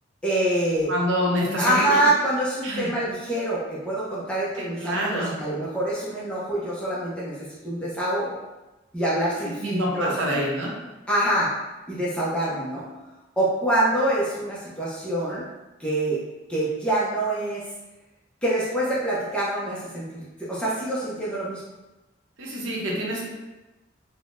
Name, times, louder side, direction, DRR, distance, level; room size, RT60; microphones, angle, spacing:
voice 1, 0.2-0.9 1.5-7.4 7.6-8.3 8.9-10.4 11.1-11.5 11.9-12.9 13.4-15.4 15.8-16.2 16.5-17.6 18.4-21.6, right 1 dB, 5° left, -8 dB, 0.6 m, -25 dB
voice 2, 0.9-2.0 2.6-2.9 4.8-5.4 9.4-10.7 22.4-23.3, equal, 85° right, -2 dB, 0.7 m, -26 dB
3.6 x 2.1 x 2.5 m, 1.1 s
head